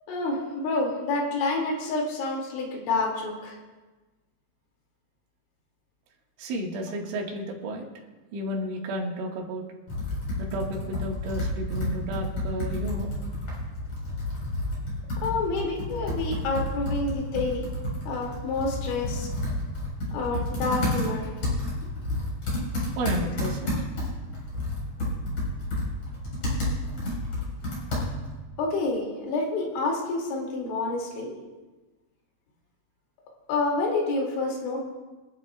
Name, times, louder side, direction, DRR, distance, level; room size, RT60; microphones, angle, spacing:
voice 1, 0.1-3.6 15.2-17.6 18.1-19.3 20.1-21.3 28.6-31.3 33.5-34.8, left 3 dB, 75° left, -1 dB, 4.7 m, -28 dB
voice 2, 6.4-7.9 8.3-9.7 10.4-13.1 23.0-23.8, equal, 75° right, -1 dB, 4.0 m, -32 dB
Computer keyboard, 9.9-28.4, left 1 dB, 35° left, 5.2 m, -30 dB
26.0 x 11.5 x 2.3 m, 1.2 s
omnidirectional pair, 5.6 m